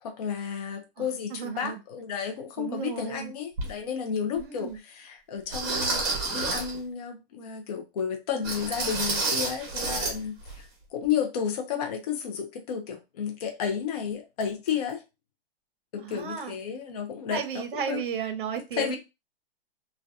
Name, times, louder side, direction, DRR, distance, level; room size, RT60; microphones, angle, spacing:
voice 1, 0.0-15.0 15.9-18.0 18.8-19.0, left 7 dB, 40° left, 0.5 m, -32 dB
voice 2, 1.0-1.8 2.6-3.3 4.4-4.8 16.0-16.5 17.3-19.0, right 7 dB, 60° right, 0.6 m, -34 dB
sound 1, 3.6-3.7 4.4-4.5 5.5-6.8 8.4-10.2 10.4-10.6 11.0-11.1, right 3 dB, 30° right, 0.9 m, -29 dB
2.6 x 2.2 x 2.3 m
hypercardioid pair, 165°, 30 cm